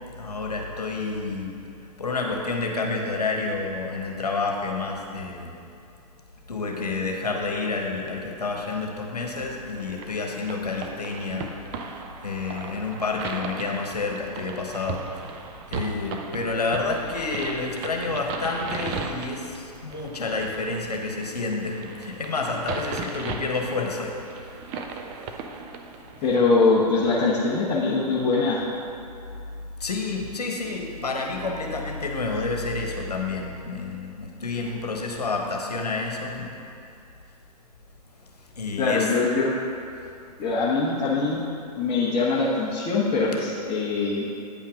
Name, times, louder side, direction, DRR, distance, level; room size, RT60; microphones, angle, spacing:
voice 1, 0.1-1.5 1.8-5.5 6.5-24.2 25.1-25.4 29.8-36.5 38.6-39.1, left 3 dB, 75° left, 1 dB, 1.2 m, -29 dB
sound 1, 9.7-26.4, right 5 dB, 30° right, 0.6 m, -37 dB
voice 2, 26.2-28.6 38.8-39.5 40.4-41.4 41.8-44.2, left 3 dB, 25° left, -6 dB, 1.0 m, -22 dB
8.9 x 5.7 x 5.0 m, 2.5 s
figure-of-eight pair, 110°, 21 cm